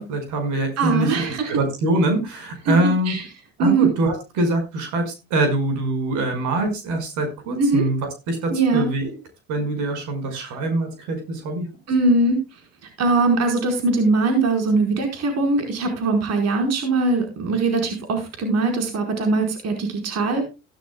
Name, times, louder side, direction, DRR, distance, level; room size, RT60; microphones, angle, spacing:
voice 1, 0.0-3.1 3.6-8.0 8.3-9.2 9.5-11.7, right 2 dB, 75° right, 6 dB, 5.4 m, -24 dB
voice 2, 0.8-1.5 2.7-2.8 3.1-3.2 3.6-3.9 7.6-7.8 8.5-8.9 10.4-10.5 11.9-12.4 13.0-20.4, right 3 dB, 55° right, 4 dB, 4.8 m, -21 dB
16.0 x 12.0 x 2.3 m, 0.27 s
supercardioid pair, 85°, 30 cm